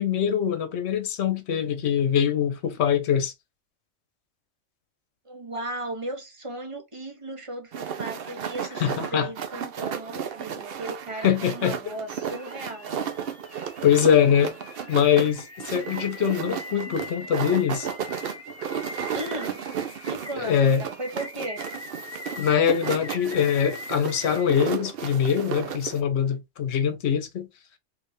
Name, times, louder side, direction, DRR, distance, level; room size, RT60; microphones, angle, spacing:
voice 1, 0.0-3.3 8.8-9.3 11.2-11.8 13.8-14.5 14.9-17.9 20.4-20.8 22.4-27.5, left 8 dB, 65° left, 1.0 m, -23 dB
voice 2, 5.2-12.9 19.1-19.6 20.1-21.6, right 2 dB, 30° right, 0.9 m, -36 dB
sound 1, 7.7-26.0, right 8 dB, 60° right, 0.8 m, -34 dB
sound 2, 8.2-8.3 11.7-24.5, left 2 dB, 25° left, 0.3 m, -43 dB
3.4 x 3.3 x 2.6 m
omnidirectional pair, 1.3 m